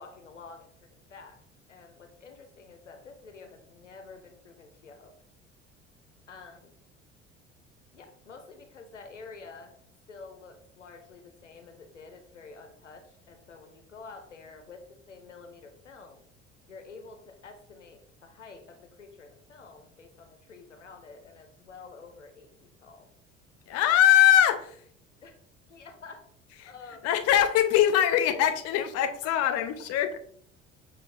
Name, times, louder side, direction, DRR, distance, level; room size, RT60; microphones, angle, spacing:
voice 1, 0.0-1.4 1.7-5.1 6.3-6.7 7.9-9.7 10.1-16.2 16.7-23.1 25.2-25.3 25.7-26.2 26.6-27.1, left 4 dB, 90° left, 6 dB, 0.5 m, -49 dB
voice 2, 23.7-24.8 27.0-30.2, left 11 dB, 45° left, 10 dB, 0.6 m, -22 dB
6.8 x 2.3 x 2.4 m, 0.62 s
figure-of-eight pair, 60°, 36 cm